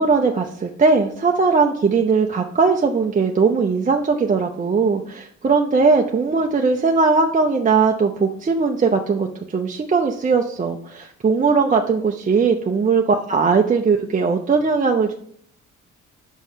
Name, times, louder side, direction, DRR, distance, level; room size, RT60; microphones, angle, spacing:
voice 1, 0.0-15.1, right 4 dB, 25° right, 2 dB, 0.6 m, -19 dB
5.5 x 5.2 x 5.7 m, 0.62 s
cardioid pair, 90°, 30 cm